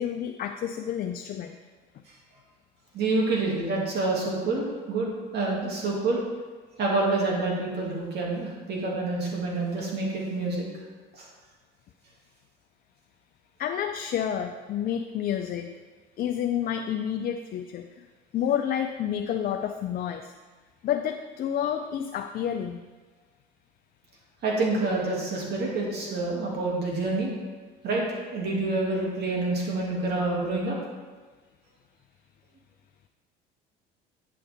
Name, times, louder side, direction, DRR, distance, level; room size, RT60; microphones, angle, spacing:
voice 1, 0.0-1.6 1.9-2.0 13.6-15.7 16.2-18.1 18.3-20.3 20.8-22.8, left 9 dB, 45° left, 6 dB, 0.5 m, -29 dB
voice 2, 2.9-6.2 6.8-10.7 11.1-11.3 24.4-27.3 27.8-28.0 28.3-30.8, right 2 dB, 55° right, -3 dB, 2.4 m, -27 dB
10.0 x 6.2 x 3.5 m, 1.4 s
supercardioid pair, 95°, 20 cm